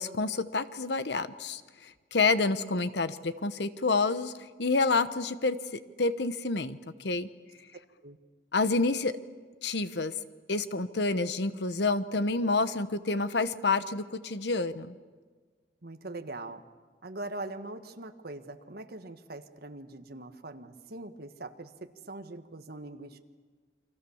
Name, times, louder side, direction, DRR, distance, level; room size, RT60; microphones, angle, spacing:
voice 1, 0.0-5.6 6.0-7.3 8.5-9.1 9.6-10.1 10.5-15.0, left 3 dB, 65° left, 13 dB, 1.1 m, -28 dB
voice 2, 15.8-16.6 17.0-23.2, right 2 dB, 55° right, 8 dB, 1.5 m, -42 dB
29.5 x 24.0 x 7.2 m, 1.5 s
head